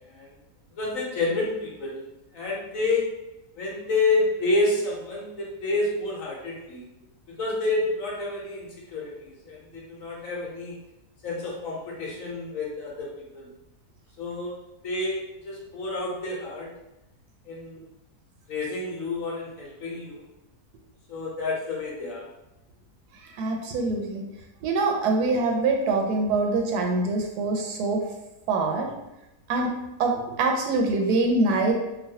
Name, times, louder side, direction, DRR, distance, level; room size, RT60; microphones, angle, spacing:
voice 1, 0.8-2.0 2.3-3.1 3.6-6.8 7.3-10.8 11.2-13.5 14.2-14.6 14.8-16.7 17.5-17.9 18.5-20.2 21.1-22.3, left 2 dB, 65° left, -3 dB, 1.0 m, -29 dB
voice 2, 23.4-24.3 24.6-28.1 28.5-28.9 29.5-29.7 30.0-31.7, right 3 dB, 80° right, 1 dB, 1.1 m, -24 dB
3.1 x 2.2 x 2.7 m, 0.92 s
omnidirectional pair, 1.6 m